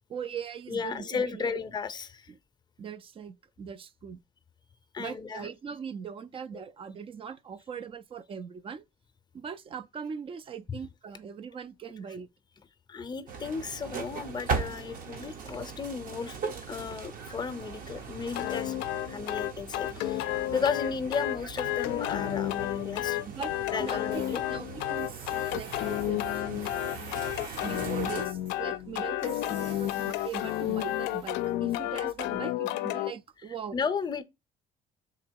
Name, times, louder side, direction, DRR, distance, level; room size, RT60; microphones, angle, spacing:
voice 1, 0.1-1.6 2.3-2.4 2.8-4.2 5.0-8.8 9.3-12.3 23.3-24.2 24.5-27.0 27.6-33.8, right 7 dB, 35° right, 0.3 m, -40 dB
voice 2, 0.7-2.3 4.9-5.5 12.9-16.4 16.7-18.7 19.1-20.2 20.5-23.2 23.7-24.4 33.7-34.2, left 5 dB, 25° left, 0.6 m, -34 dB
sound 1, 13.3-28.3, right 5 dB, 55° right, 0.9 m, -39 dB
sound 2, 18.3-33.1, left 15 dB, 90° left, 0.4 m, -31 dB
Tools, 24.1-32.4, right 3 dB, 70° right, 1.8 m, -49 dB
3.7 x 2.9 x 4.4 m
cardioid pair, 110°, 17 cm